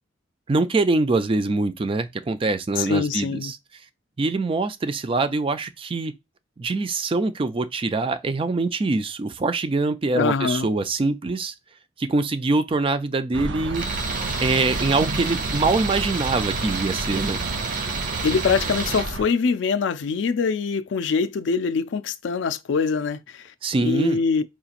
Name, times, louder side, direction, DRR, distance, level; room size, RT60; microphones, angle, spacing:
voice 1, 0.5-3.6 4.2-6.1 6.6-11.5 12.0-13.9 14.4-17.4 23.6-24.2, right 3 dB, 30° right, 0.4 m, -24 dB
voice 2, 2.8-3.5 10.1-10.7 18.2-23.5 23.8-24.4, left 5 dB, 70° left, 0.4 m, -23 dB
sound 1, 13.3-19.2, right 2 dB, 70° right, 0.6 m, -31 dB
Tools, 13.7-19.1, right 4 dB, 45° right, 0.9 m, -30 dB
4.7 x 2.9 x 2.4 m
head